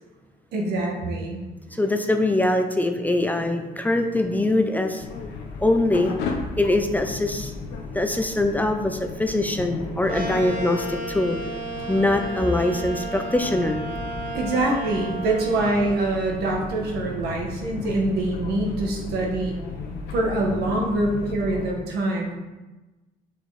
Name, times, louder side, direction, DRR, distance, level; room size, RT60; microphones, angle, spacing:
voice 1, 0.5-1.4 14.3-19.6 20.1-22.4, right 2 dB, 75° right, 0 dB, 1.8 m, -25 dB
voice 2, 1.7-5.1 5.6-6.2 6.6-7.5 7.9-11.4 11.9-13.8, left 1 dB, 10° left, 5 dB, 0.6 m, -23 dB
sound 1, 5.0-21.7, left 4 dB, 85° left, 1.1 m, -35 dB
sound 2, 10.1-15.9, right 2 dB, 55° right, 1.9 m, -33 dB
6.9 x 5.9 x 4.2 m, 1.1 s
cardioid pair, 110°, 17 cm